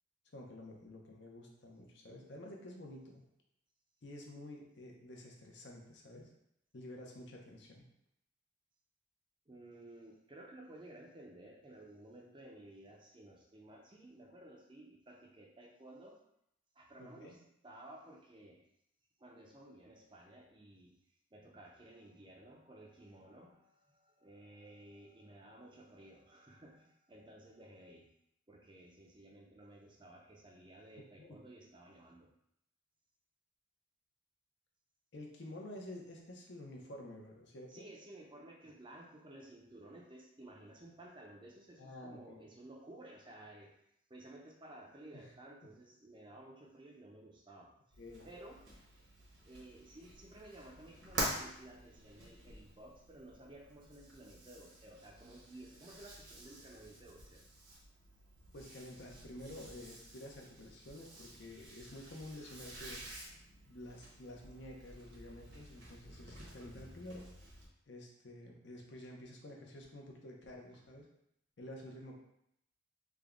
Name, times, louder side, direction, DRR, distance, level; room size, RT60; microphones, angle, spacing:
voice 1, 0.3-3.2 4.0-6.3 6.7-7.9 17.0-17.4 31.2-31.4 35.1-37.8 41.8-42.5 45.1-45.3 48.0-48.3 58.5-63.0 63.6-67.2 67.9-71.1 71.6-72.1, left 1 dB, 65° left, 0 dB, 0.7 m, -50 dB
voice 2, 9.5-16.2 16.8-17.4 17.6-18.7 19.2-20.9 21.3-28.1 28.5-32.3 37.7-43.7 44.1-47.7 48.2-48.6 49.4-57.4, right 1 dB, 25° right, 0 dB, 0.5 m, -55 dB
sound 1, 47.9-67.7, right 1 dB, 70° right, 1.1 m, -48 dB
3.5 x 2.2 x 3.6 m, 0.76 s
head